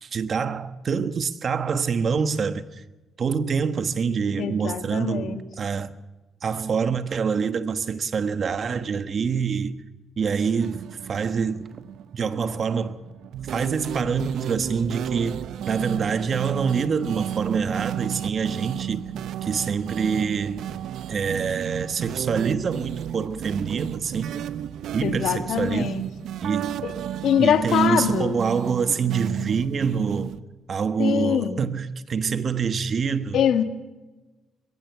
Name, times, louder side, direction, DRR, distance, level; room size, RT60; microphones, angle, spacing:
voice 1, 0.0-2.6 3.2-5.9 6.4-9.8 10.2-11.8 12.1-13.0 13.5-19.0 19.4-20.6 21.1-24.5 24.9-25.9 26.4-26.8 27.4-30.3 30.7-33.4, right 6 dB, 50° right, 1.2 m, -26 dB
voice 2, 4.4-5.4 25.0-26.0 26.8-26.9 27.2-28.4 31.0-31.6 33.3-33.6, left 9 dB, 75° left, 1.9 m, -23 dB
sound 1, 10.6-30.4, right 11 dB, 75° right, 0.7 m, -33 dB
21.5 x 15.5 x 8.1 m
cardioid pair, 90°, 0 cm